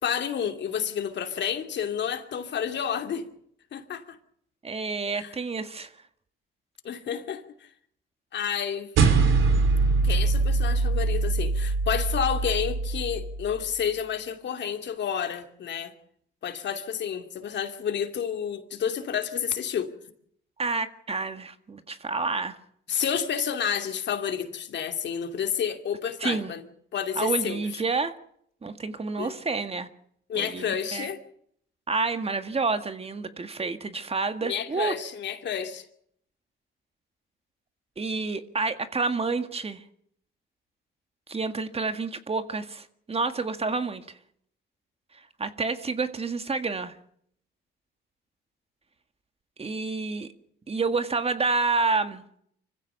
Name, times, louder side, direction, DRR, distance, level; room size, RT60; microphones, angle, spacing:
voice 1, 0.0-3.3 3.7-4.2 5.2-5.3 6.8-7.4 8.3-8.9 10.0-15.9 16.4-19.9 22.9-26.6 26.9-27.6 29.2-29.3 30.3-31.2 34.4-35.8, left 8 dB, 65° left, 2.6 m, -30 dB
voice 2, 4.6-5.9 20.6-22.6 26.2-26.5 27.2-28.2 28.6-29.9 30.3-31.1 31.9-34.9 38.0-39.8 41.3-44.1 45.4-47.0 49.6-50.3 50.7-52.2, right 4 dB, 30° right, 1.8 m, -29 dB
sound 1, 9.0-13.6, right 4 dB, 85° right, 3.6 m, -23 dB
25.5 x 15.5 x 7.0 m
cardioid pair, 90°, 20 cm